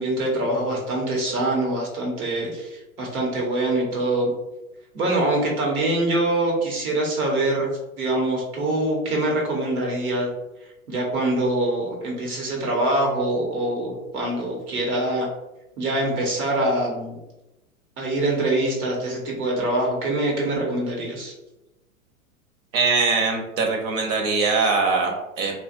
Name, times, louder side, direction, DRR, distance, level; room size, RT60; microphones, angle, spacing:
voice 1, 0.0-4.3 4.9-7.7 8.0-10.3 10.9-15.3 15.8-17.2 18.0-21.3, right 1 dB, 90° right, -1 dB, 1.2 m, -24 dB
voice 2, 22.7-25.5, right 4 dB, 65° right, 2 dB, 0.9 m, -22 dB
2.8 x 2.4 x 2.5 m, 0.95 s
hypercardioid pair, 115°, 42 cm